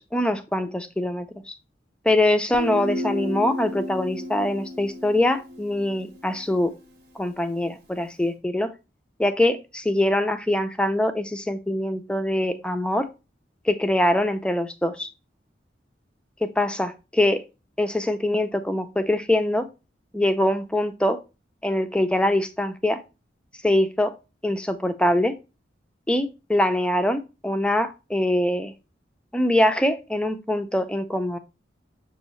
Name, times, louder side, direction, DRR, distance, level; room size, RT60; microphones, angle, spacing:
voice 1, 0.0-1.5 2.0-6.7 7.2-8.7 9.2-13.0 13.7-15.1 16.4-17.4 17.8-19.7 20.1-21.2 21.6-23.0 23.6-24.1 24.4-25.3 26.1-28.7 29.3-31.4, left 1 dB, 5° left, 8 dB, 0.4 m, -23 dB
Guitar, 2.5-6.2, equal, 65° right, 0.9 m, -32 dB
6.4 x 2.7 x 3.0 m, 0.29 s
head